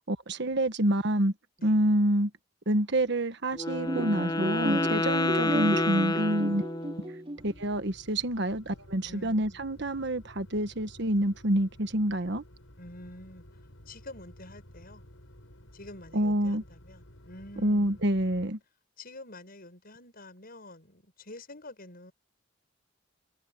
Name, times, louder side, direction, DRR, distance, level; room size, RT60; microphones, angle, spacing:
voice 1, 0.0-1.3 1.6-2.3 2.7-6.6 7.4-12.4 16.1-16.6 17.6-18.6, right 1 dB, 60° right, 1.4 m, -27 dB
Wind instrument woodwind instrument, 3.5-7.2, left 2 dB, 20° left, 0.9 m, -29 dB
sound 1, 3.9-7.5, right 1 dB, 30° right, 3.2 m, -33 dB
sound 2, 7.4-18.5, equal, 85° left, 6.6 m, -53 dB
voice 2, 9.0-9.6 12.8-13.4 13.9-15.0 15.7-18.2 19.0-22.1, left 1 dB, 50° left, 7.7 m, -47 dB
head